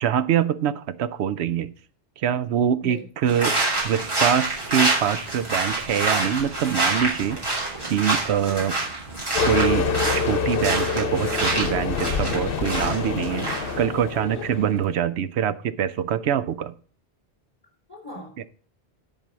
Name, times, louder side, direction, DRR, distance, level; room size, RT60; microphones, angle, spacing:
voice 1, 0.0-1.7 2.2-7.4 7.8-8.8 9.5-16.7, right 9 dB, 80° right, 15 dB, 0.9 m, -24 dB
voice 2, 2.8-3.3 14.4-14.7 17.9-18.5, left 1 dB, 20° left, 0 dB, 3.6 m, -40 dB
sound 1, 3.3-13.8, right 2 dB, 25° right, 3.0 m, -27 dB
sound 2, 9.4-14.9, left 5 dB, 60° left, 1.0 m, -26 dB
10.5 x 4.7 x 6.0 m, 0.43 s
omnidirectional pair, 1.1 m